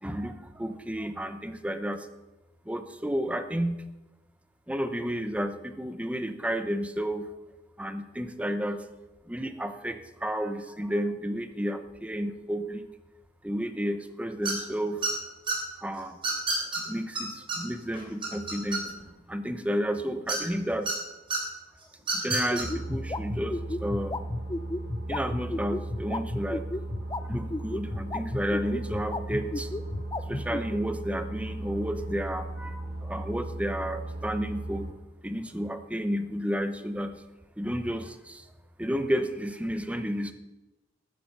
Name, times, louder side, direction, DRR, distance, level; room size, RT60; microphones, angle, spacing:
voice 1, 0.0-2.1 2.7-3.8 4.7-7.3 7.8-8.8 9.3-12.8 13.4-15.0 15.8-16.2 16.8-18.9 19.3-20.9 22.1-24.2 25.1-26.6 27.1-29.7 30.3-34.9 35.2-37.2 37.6-38.5 38.8-40.3, equal, 10° right, 9 dB, 0.8 m, -31 dB
sound 1, 14.4-14.7 15.0-15.5 16.2-16.8 17.1-17.2 17.5-17.6 17.9-19.1 20.3-20.9 21.3-21.4 22.0-22.6, right 4 dB, 30° right, 3.6 m, -28 dB
sound 2, 22.3-30.8, left 2 dB, 20° left, 0.5 m, -32 dB
sound 3, 22.6-34.9, right 1 dB, 80° right, 3.5 m, -37 dB
13.5 x 9.2 x 5.5 m, 1.0 s
head